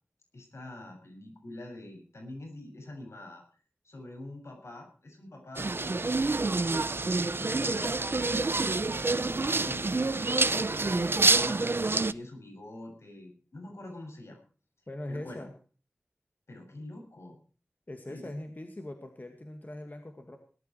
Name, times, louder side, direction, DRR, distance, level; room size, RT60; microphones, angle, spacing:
voice 1, 0.3-3.4 3.8-6.8 7.4-14.4 15.1-15.5 16.5-17.4 18.1-18.3, left 1 dB, 75° left, 3 dB, 7.2 m, -45 dB
sound 1, 5.6-12.1, right 3 dB, 55° right, 0.7 m, -27 dB
voice 2, 7.4-7.8 14.9-15.5 17.9-20.4, left 1 dB, 40° left, 5 dB, 2.2 m, -41 dB
18.5 x 12.5 x 4.7 m, 0.39 s
wide cardioid pair, 65°, 5 cm